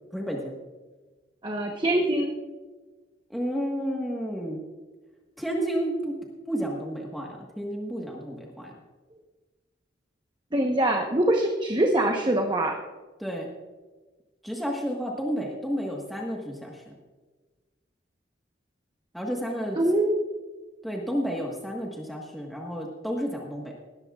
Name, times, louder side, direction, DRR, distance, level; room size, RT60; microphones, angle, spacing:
voice 1, 0.1-0.5 3.3-4.6 5.4-6.2 6.5-8.7 13.2-13.5 14.4-17.0 19.1-19.8 20.8-23.7, equal, ahead, -2 dB, 1.4 m, -31 dB
voice 2, 1.4-2.3 10.5-12.7 19.8-20.2, right 1 dB, 25° right, 2 dB, 1.0 m, -23 dB
19.5 x 13.5 x 2.4 m, 1.3 s
head